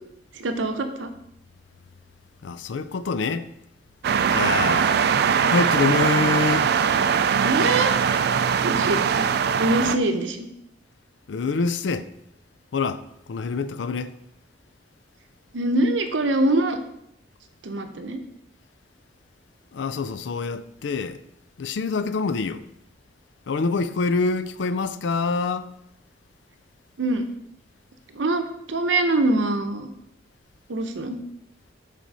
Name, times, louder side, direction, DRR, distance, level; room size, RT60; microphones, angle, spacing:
voice 1, 0.3-1.1 7.4-7.9 8.6-9.2 9.6-10.5 15.5-16.8 17.6-18.2 27.0-27.3 28.1-29.9 30.7-31.2, right 2 dB, 85° right, 0.7 m, -24 dB
voice 2, 2.4-3.5 4.3-5.0 5.5-6.7 11.3-12.1 12.7-13.0 13.3-14.1 19.7-21.2 21.6-22.6 23.5-25.7, left 4 dB, 75° left, 0.4 m, -25 dB
sound 1, 4.0-10.0, right 7 dB, 60° right, 0.4 m, -21 dB
6.0 x 4.2 x 5.5 m
head